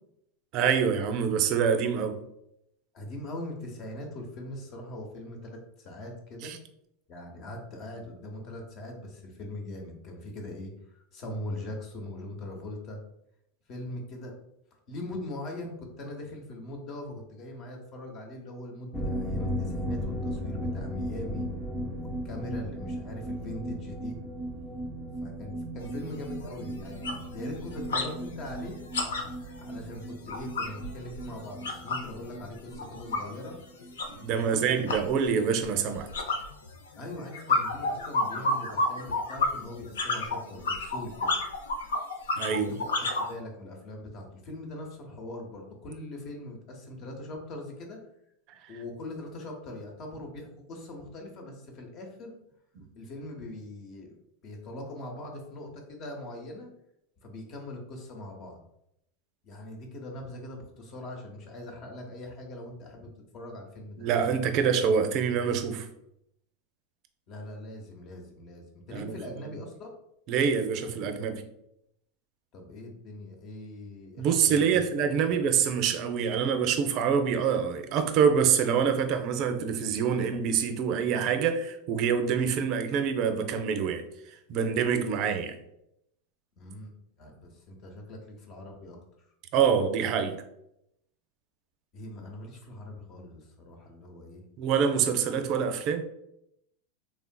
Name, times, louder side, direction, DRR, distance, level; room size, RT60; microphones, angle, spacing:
voice 1, 0.5-2.2 6.4-6.6 34.1-36.1 42.4-42.7 52.8-52.9 64.0-65.9 68.9-69.2 70.3-71.4 74.2-84.0 84.5-85.6 89.5-90.4 94.6-96.0, right 7 dB, 50° right, 7 dB, 0.4 m, -26 dB
voice 2, 2.9-6.5 7.1-13.0 13.7-14.4 14.9-21.5 22.0-24.2 25.2-28.8 29.6-33.6 34.3-34.8 36.9-41.4 42.5-48.0 48.7-52.4 52.9-54.2 54.4-56.7 57.2-58.6 59.4-64.0 67.3-69.9 72.5-74.8 75.3-75.4 86.6-89.3 91.9-94.4, left 1 dB, 50° left, 2 dB, 0.8 m, -41 dB
sound 1, 18.9-34.3 34.6-34.7 35.0-35.1, equal, 10° left, 0.4 m, -36 dB
sound 2, 25.8-25.9 26.3-26.5 26.8-28.1 28.4-32.1 32.4-43.3, left 2 dB, 90° left, 0.4 m, -31 dB
3.4 x 2.4 x 2.2 m, 0.79 s
hypercardioid pair, 105°, 0 cm